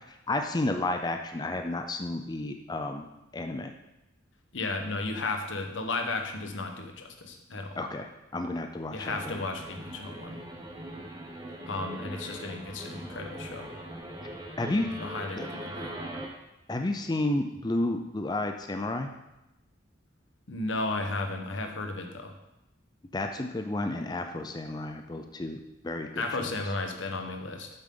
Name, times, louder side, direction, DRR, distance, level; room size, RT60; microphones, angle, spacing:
voice 1, 0.3-3.0 3.3-3.7 7.8-9.4 14.6-14.9 15.4-15.5 16.7-19.1 23.1-26.6, left 2 dB, 20° left, 5 dB, 0.5 m, -31 dB
voice 2, 4.5-7.8 8.9-10.4 11.7-13.7 15.0-15.9 20.5-22.3 26.2-27.7, left 3 dB, 85° left, 5 dB, 1.1 m, -34 dB
sound 1, 9.1-16.3, right 1 dB, 20° right, 1.1 m, -41 dB
8.0 x 7.6 x 3.8 m, 0.92 s
head